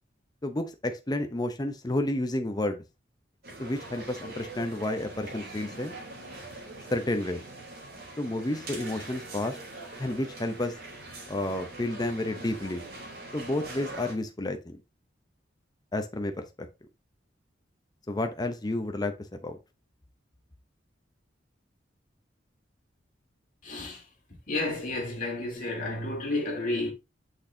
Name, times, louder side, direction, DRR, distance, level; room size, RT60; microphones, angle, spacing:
voice 1, 0.4-2.8 3.6-5.9 6.9-7.4 8.2-9.6 10.0-10.7 11.3-12.8 13.3-14.8 15.9-16.7 18.1-19.1 19.4-19.6, left 1 dB, 20° left, 0.7 m, -31 dB
sound 1, 3.4-14.1, right 2 dB, 55° right, 3.3 m, -43 dB
voice 2, 23.6-24.0 24.5-26.9, left 2 dB, 45° left, 2.9 m, -31 dB
6.3 x 6.2 x 2.7 m
head